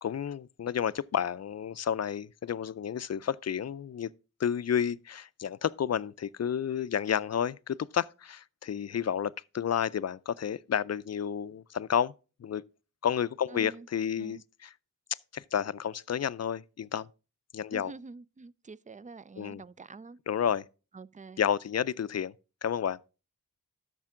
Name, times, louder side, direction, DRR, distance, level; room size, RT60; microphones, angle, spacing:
voice 1, 0.0-4.1 4.4-12.1 12.4-12.6 13.0-14.7 15.3-17.1 17.5-17.9 19.4-19.6 20.3-20.6 21.4-22.3 22.6-23.0, left 8 dB, 55° left, 0.4 m, -31 dB
voice 2, 13.5-13.9 14.2-14.4 17.7-20.2 20.9-21.4, right 3 dB, 25° right, 0.4 m, -46 dB
12.0 x 6.9 x 3.6 m
wide cardioid pair, 60°, 32 cm